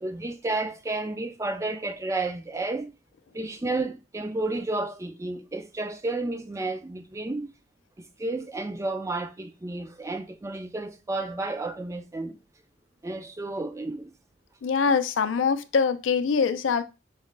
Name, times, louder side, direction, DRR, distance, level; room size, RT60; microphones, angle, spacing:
voice 1, 0.0-2.9 3.3-7.5 8.0-12.4 13.0-14.1, right 2 dB, 15° right, 0.3 m, -31 dB
voice 2, 14.6-16.8, left 5 dB, 85° left, 0.4 m, -23 dB
4.8 x 2.1 x 3.1 m
head